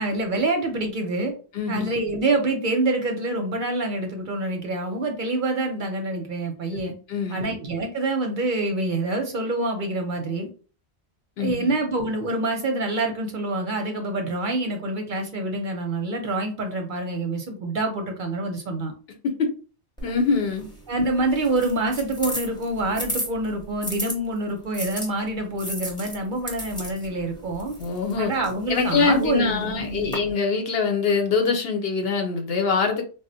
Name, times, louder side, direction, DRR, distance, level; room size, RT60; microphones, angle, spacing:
voice 1, 0.0-1.3 1.7-6.9 7.3-10.5 11.4-18.9 20.9-27.7 28.2-30.2, right 2 dB, 55° right, 4 dB, 0.7 m, -26 dB
voice 2, 1.5-1.9 6.7-6.8 7.1-7.5 11.4-11.7 19.4-19.5 20.0-20.7 27.8-28.3 28.7-33.0, left 4 dB, 65° left, 4 dB, 0.8 m, -23 dB
sound 1, 20.0-24.1 24.7-30.1, equal, 5° left, 0.7 m, -35 dB
3.6 x 2.0 x 2.6 m, 0.37 s
omnidirectional pair, 1.1 m